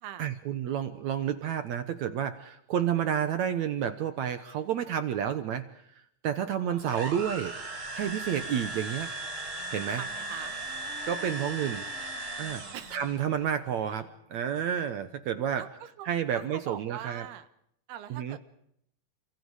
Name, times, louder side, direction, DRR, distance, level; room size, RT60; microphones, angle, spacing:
voice 1, 0.2-5.8 6.2-7.5 7.9-9.1 9.7-10.1 11.1-11.8 12.4-12.7 12.9-15.7 16.1-17.3 18.1-18.4, right 9 dB, 70° right, 11 dB, 1.8 m, -30 dB
sound 1, 6.8-13.2, right 2 dB, 50° right, 5.7 m, -37 dB
Wind instrument woodwind instrument, 9.0-14.4, right 2 dB, 25° left, 4.8 m, -52 dB
voice 2, 10.0-10.5 12.7-12.9 15.6-16.1 16.3-17.5 17.9-18.4, right 11 dB, 85° right, 11 dB, 3.3 m, -42 dB
29.0 x 27.0 x 4.9 m, 0.73 s
omnidirectional pair, 4.4 m